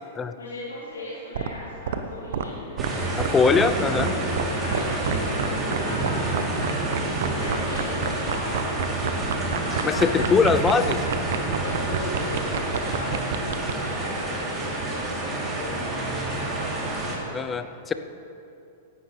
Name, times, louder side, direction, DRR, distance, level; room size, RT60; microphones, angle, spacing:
voice 1, 0.4-4.0 4.6-6.9 7.3-8.7 9.6-10.3 11.6-16.6, left 1 dB, 90° left, -7 dB, 2.2 m, -38 dB
sound 1, 1.3-1.5 1.9-2.0 2.3-2.4 2.8-2.9 3.2-3.3 3.6-3.7 4.0-4.1 4.4-4.5 4.7-5.1 5.4-5.5 5.7-13.7, right 9 dB, 65° right, 0.9 m, -27 dB
sound 2, 2.8-17.1, right 2 dB, 25° right, 3.1 m, -28 dB
voice 2, 3.2-4.1 9.8-11.0 17.3-17.9, left 5 dB, 20° left, 10 dB, 0.6 m, -21 dB
16.5 x 11.0 x 3.3 m, 2.7 s
hypercardioid pair, 105°, 0 cm